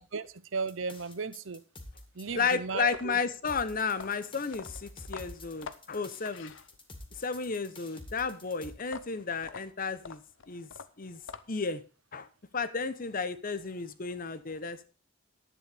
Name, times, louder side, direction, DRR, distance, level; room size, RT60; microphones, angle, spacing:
voice 1, 0.0-1.6 2.2-3.2, right 4 dB, 80° right, 15 dB, 0.8 m, -35 dB
sound 1, 0.7-2.2 3.5-8.7, left 2 dB, 25° left, 2.1 m, -48 dB
voice 2, 2.3-6.5 7.1-10.2 10.5-10.7 11.0-11.2 11.5-11.8 12.1-12.3 12.5-14.9, left 5 dB, 45° left, 14 dB, 0.9 m, -33 dB
sound 2, 2.8-7.1 8.8-11.8, left 5 dB, 80° left, 0.8 m, -46 dB
11.0 x 8.9 x 5.0 m, 0.35 s
head